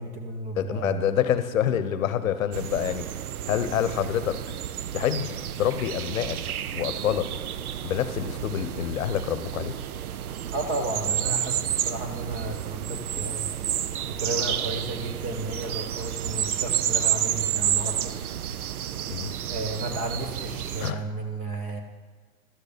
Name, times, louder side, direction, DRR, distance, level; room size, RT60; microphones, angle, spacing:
voice 1, 0.0-1.1 10.5-13.6 14.2-18.1 19.5-21.8, right 2 dB, 20° right, 4 dB, 0.8 m, -33 dB
voice 2, 0.6-3.1 3.5-4.4 4.9-6.4 6.7-7.3 7.8-9.7 19.1-19.3 20.8-21.0, left 10 dB, 65° left, 11 dB, 0.9 m, -27 dB
sound 1, 2.5-20.9, right 10 dB, 90° right, 0.6 m, -30 dB
12.5 x 6.6 x 5.1 m, 1.4 s
hypercardioid pair, 150°, 43 cm